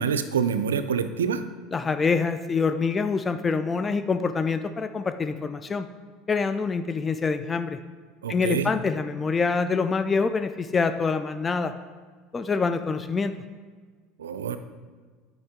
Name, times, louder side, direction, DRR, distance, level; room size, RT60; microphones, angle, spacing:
voice 1, 0.0-1.4 8.2-8.7 14.2-14.6, right 7 dB, 90° right, 10 dB, 0.4 m, -26 dB
voice 2, 1.7-5.9 6.3-7.8 8.3-11.7 12.3-13.3, left 4 dB, 25° left, 10 dB, 0.3 m, -25 dB
7.8 x 5.2 x 3.6 m, 1.5 s
hypercardioid pair, 80°, 0 cm